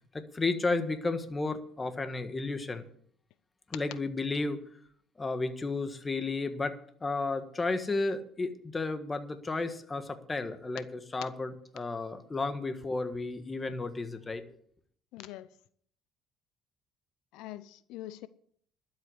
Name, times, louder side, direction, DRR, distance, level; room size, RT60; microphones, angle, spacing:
voice 1, 0.1-2.8 3.7-4.6 5.2-6.7 7.0-10.8 11.1-14.4, left 3 dB, 20° left, 1.5 m, -32 dB
voice 2, 15.1-15.5 17.3-18.3, left 14 dB, 85° left, 0.6 m, -43 dB
12.0 x 8.0 x 8.0 m
cardioid pair, 115°, 0 cm